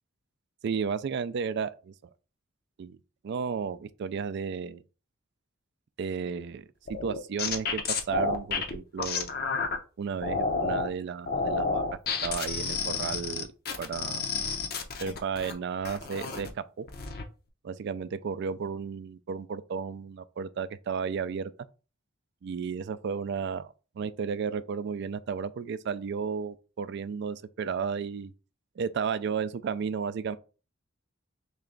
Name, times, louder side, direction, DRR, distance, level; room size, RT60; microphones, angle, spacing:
voice 1, 0.6-1.9 2.8-3.0 3.2-4.8 6.0-9.3 10.0-11.8 12.2-13.5 13.8-14.3 15.0-16.9 17.6-21.5 22.4-28.3 28.8-30.4, right 6 dB, 55° right, 0.3 m, -33 dB
sound 1, 6.9-9.8 10.2-10.9 11.3-15.5 15.8-16.5 16.9-17.2, left 4 dB, 50° left, 0.6 m, -30 dB
3.3 x 3.0 x 3.7 m
head